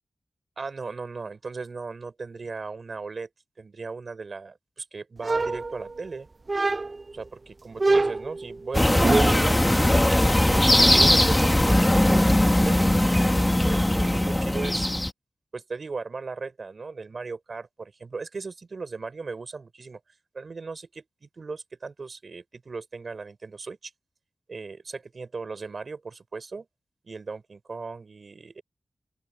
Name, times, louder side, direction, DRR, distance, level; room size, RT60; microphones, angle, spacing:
voice 1, 0.6-3.3 3.6-6.3 7.1-9.6 10.3-13.0 13.6-14.9 15.5-20.0 20.3-23.9 24.5-26.7 27.0-28.6, right 4 dB, 50° right, 4.4 m, -37 dB
sound 1, 5.2-6.1 6.5-7.1 7.8-9.6, right 3 dB, 35° right, 0.3 m, -25 dB
sound 2, 8.7-15.1, left 1 dB, 10° left, 1.2 m, -20 dB
open air
wide cardioid pair, 125°, 0 cm